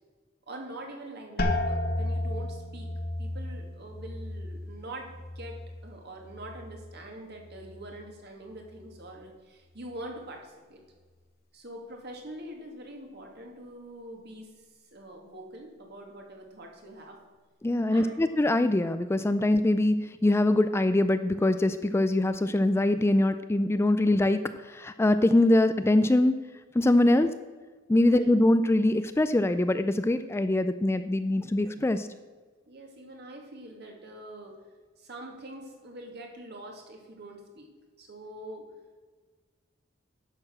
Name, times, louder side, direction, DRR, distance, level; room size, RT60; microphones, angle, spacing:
voice 1, 0.5-2.9 3.2-10.8 11.5-14.5 14.9-17.2 17.9-18.4 27.0-27.4 28.0-28.4 32.7-34.5 35.0-37.7 38.0-38.6, right 1 dB, 55° right, 1 dB, 2.2 m, -44 dB
sound 1, 1.4-7.0 7.3-8.0 8.6-9.0, left 1 dB, 50° left, 1.2 m, -34 dB
voice 2, 17.6-26.4 26.7-27.3 27.9-32.1, left 1 dB, 15° left, 10 dB, 0.3 m, -23 dB
10.5 x 6.8 x 6.1 m, 1.4 s
head